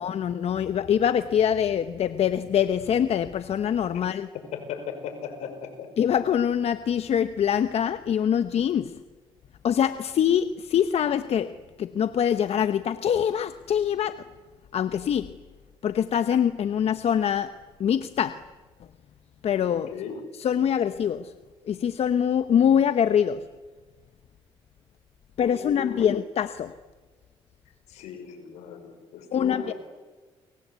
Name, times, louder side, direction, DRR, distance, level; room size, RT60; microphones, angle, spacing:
voice 1, 0.0-4.3 6.0-9.0 9.6-14.2 14.7-15.3 15.8-17.5 17.8-18.4 19.4-19.9 20.4-21.3 21.7-23.4 25.4-26.7 29.3-29.7, left 9 dB, 65° left, 11 dB, 1.0 m, -24 dB
voice 2, 4.5-5.9 19.7-20.2 25.4-26.1 27.9-29.7, left 7 dB, 90° left, 7 dB, 5.6 m, -37 dB
29.5 x 24.0 x 8.3 m, 1.3 s
cardioid pair, 80°, 11 cm